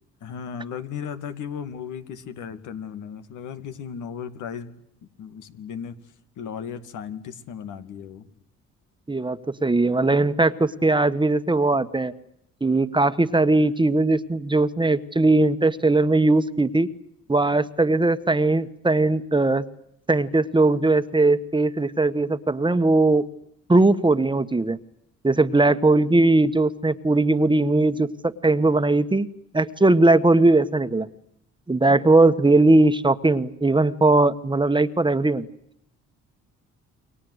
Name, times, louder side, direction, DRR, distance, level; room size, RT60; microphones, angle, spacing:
voice 1, 0.2-4.8 5.2-6.0 6.4-8.3, left 7 dB, 80° left, 9 dB, 2.5 m, -35 dB
voice 2, 9.1-12.1 12.6-16.9 17.3-19.6 20.1-23.2 23.7-24.8 25.2-28.1 28.4-29.3 29.5-31.1 31.7-35.4, right 2 dB, 15° right, 11 dB, 1.4 m, -19 dB
29.5 x 23.5 x 8.1 m, 0.76 s
cardioid pair, 90°, 30 cm